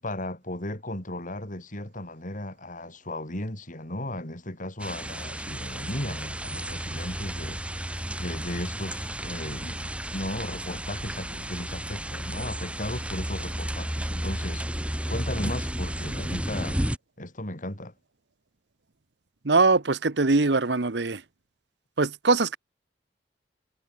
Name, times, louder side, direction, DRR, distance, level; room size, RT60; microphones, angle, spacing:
voice 1, 0.0-16.8 17.2-17.9, left 1 dB, 50° left, 7.3 m, -36 dB
sound 1, 4.8-17.0, equal, 5° right, 2.7 m, -33 dB
voice 2, 19.4-21.2 22.0-22.6, right 3 dB, 70° right, 1.1 m, -22 dB
head